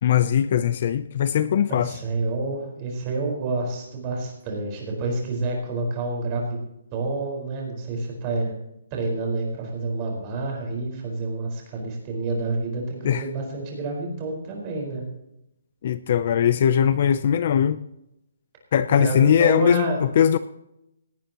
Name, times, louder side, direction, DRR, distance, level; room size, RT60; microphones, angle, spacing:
voice 1, 0.0-2.0 13.0-13.2 15.8-17.8 18.7-19.9 20.2-20.4, left 9 dB, 35° left, 13 dB, 0.5 m, -20 dB
voice 2, 1.7-6.6 6.9-8.6 8.9-15.0 18.9-20.0, right 2 dB, 20° right, 0 dB, 4.8 m, -28 dB
18.5 x 18.0 x 3.0 m, 0.85 s
hypercardioid pair, 175°, 0 cm